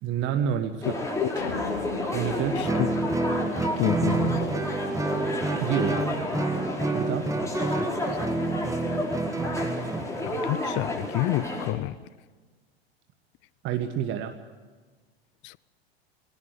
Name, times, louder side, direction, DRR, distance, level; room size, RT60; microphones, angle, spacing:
voice 1, 0.0-1.0 2.1-2.6 5.6-6.0 6.9-7.3 13.6-14.3, right 9 dB, 40° right, 1.4 m, -28 dB
sound 1, 0.8-11.7, left 1 dB, 10° left, 4.5 m, -31 dB
sound 2, 1.4-3.9, left 5 dB, 70° left, 3.3 m, -38 dB
voice 2, 2.5-2.9 3.8-4.5 8.1-8.2 10.2-12.0 15.4-15.6, left 19 dB, 35° left, 0.6 m, -29 dB
Guitar, 2.6-10.1, right 3 dB, 10° right, 1.4 m, -28 dB
19.5 x 17.5 x 9.8 m
figure-of-eight pair, 90°, 32 cm